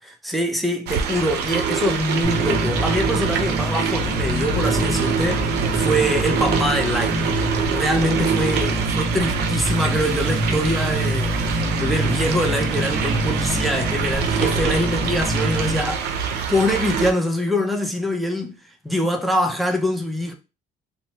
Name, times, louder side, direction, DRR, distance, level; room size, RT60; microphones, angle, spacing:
voice 1, 0.0-7.2 7.7-18.6 18.8-20.3, equal, ahead, 0.5 m, -24 dB
sound 1, 0.9-17.1, right 7 dB, 75° right, 0.5 m, -25 dB
sound 2, 2.2-15.8, equal, 40° right, 1.0 m, -26 dB
3.0 x 2.1 x 2.8 m
cardioid pair, 110°, 17 cm